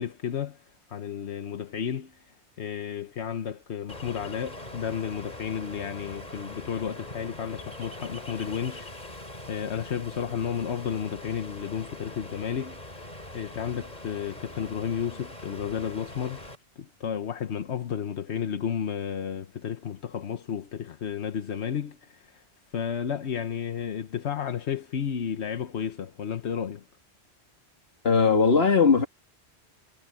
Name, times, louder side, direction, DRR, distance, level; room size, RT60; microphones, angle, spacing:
voice 1, 0.0-16.5 16.8-22.4 22.7-26.8, left 8 dB, 90° left, 1.3 m, -32 dB
Ocean, 3.9-16.5, left 1 dB, 40° left, 5.2 m, -42 dB
voice 2, 28.0-29.1, left 5 dB, 70° left, 2.2 m, -19 dB
omnidirectional pair, 1.1 m